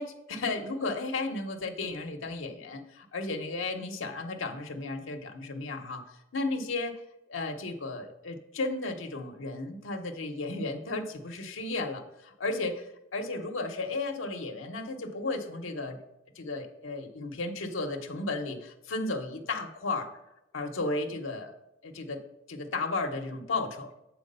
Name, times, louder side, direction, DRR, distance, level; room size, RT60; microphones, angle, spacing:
voice 1, 0.0-6.0 6.3-6.9 7.3-16.0 16.4-20.1 20.5-21.5 21.8-22.2 22.5-23.9, left 3 dB, 80° left, 4 dB, 0.8 m, -34 dB
7.4 x 4.6 x 5.4 m, 0.89 s
head